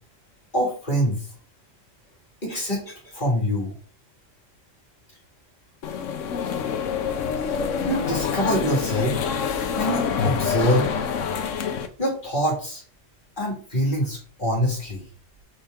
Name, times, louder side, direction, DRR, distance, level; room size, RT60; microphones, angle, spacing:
voice 1, 0.5-1.3 2.4-3.7 7.9-9.2 9.7-10.9 12.0-12.8 13.4-15.0, equal, 40° left, -1 dB, 2.3 m, -25 dB
sound 1, 5.8-11.9, left 6 dB, 90° left, 1.1 m, -26 dB
6.5 x 4.2 x 3.6 m, 0.41 s
omnidirectional pair, 1.3 m